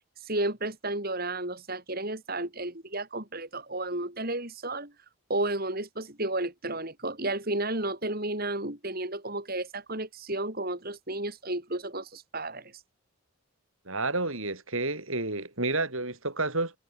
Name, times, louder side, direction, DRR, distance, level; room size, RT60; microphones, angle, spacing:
voice 1, 0.2-4.9 5.3-12.7, right 2 dB, 40° right, 4.8 m, -32 dB
voice 2, 13.9-16.7, right 2 dB, 65° right, 5.9 m, -30 dB
head